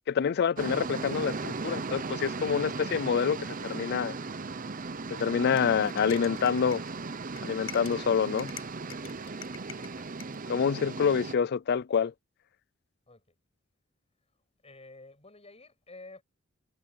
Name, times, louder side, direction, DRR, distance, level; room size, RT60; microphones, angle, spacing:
voice 1, 0.1-4.2 5.1-6.8 7.4-8.5 10.5-12.1, left 6 dB, 55° left, 0.4 m, -27 dB
sound 1, 0.6-11.4, right 4 dB, 40° right, 0.8 m, -37 dB
sound 2, 4.8-10.4, left 9 dB, 75° left, 7.4 m, -48 dB
voice 2, 8.9-10.0 13.1-13.4 14.6-16.2, left 2 dB, 30° left, 7.4 m, -53 dB
head